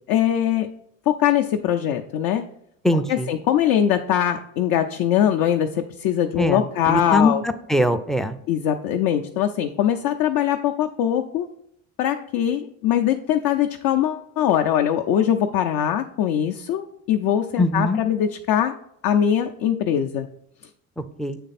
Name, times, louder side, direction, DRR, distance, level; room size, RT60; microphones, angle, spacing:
voice 1, 0.1-0.7 1.1-2.4 2.9-7.4 8.5-11.5 12.0-18.7 19.0-20.3, left 10 dB, 65° left, 5 dB, 0.6 m, -22 dB
voice 2, 2.8-3.3 6.4-8.4 17.6-18.0 21.0-21.4, left 1 dB, ahead, 9 dB, 0.3 m, -22 dB
7.9 x 3.3 x 4.1 m, 0.73 s
supercardioid pair, 80°, 38 cm